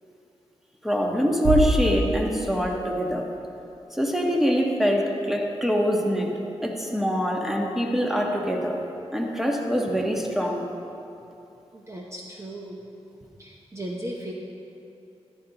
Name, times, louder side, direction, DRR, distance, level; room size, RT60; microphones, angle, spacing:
voice 1, 0.8-3.3 3.9-6.3 6.6-8.8 9.1-10.7, equal, 5° right, 0 dB, 1.4 m, -24 dB
Bass drum, 1.4-3.1, right 1 dB, 75° right, 0.9 m, -26 dB
voice 2, 11.7-12.8 13.4-14.3, right 1 dB, 25° right, -2 dB, 0.9 m, -36 dB
13.5 x 10.5 x 3.0 m, 2.9 s
cardioid pair, 65°, 11 cm